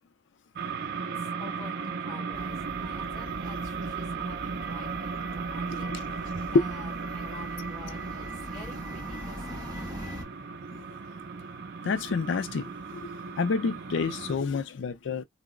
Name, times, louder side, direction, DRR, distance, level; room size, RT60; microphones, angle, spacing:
sound 1, 0.6-14.4, right 5 dB, 50° right, 0.5 m, -36 dB
voice 1, 1.0-9.6, left 2 dB, 5° left, 1.9 m, -48 dB
sound 2, 2.3-10.2, equal, 20° right, 0.9 m, -42 dB
voice 2, 11.8-13.1 13.4-15.2, left 5 dB, 65° left, 0.4 m, -29 dB
2.9 x 2.0 x 3.6 m
head